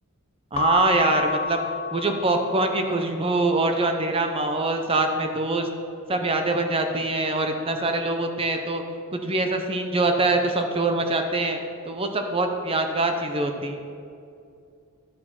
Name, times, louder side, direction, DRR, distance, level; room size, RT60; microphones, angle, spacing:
Keyboard (musical) / Bell, 0.5-3.0, left 4 dB, 25° left, 0.4 m, -29 dB
voice 1, 0.5-1.6 1.9-5.7 6.1-8.8 9.1-11.6 11.9-13.8, right 2 dB, 25° right, 5 dB, 0.6 m, -24 dB
11.0 x 6.6 x 5.8 m, 2.5 s
head